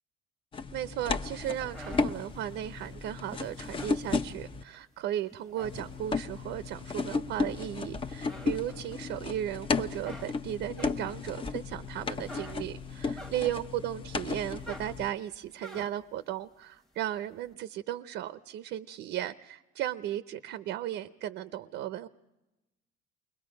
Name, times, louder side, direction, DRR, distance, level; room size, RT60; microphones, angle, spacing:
sound 1, 0.5-4.6 5.6-15.1, left 4 dB, 25° left, 0.7 m, -34 dB
voice 1, 0.7-22.1, right 12 dB, 65° right, 12 dB, 0.7 m, -36 dB
sound 2, 1.4-4.8 5.2-6.3 6.9-7.8 8.1-9.4 9.7-13.8 14.2-16.2, equal, ahead, 1.1 m, -48 dB
29.0 x 22.0 x 5.2 m, 1.0 s
cardioid pair, 125°, 20 cm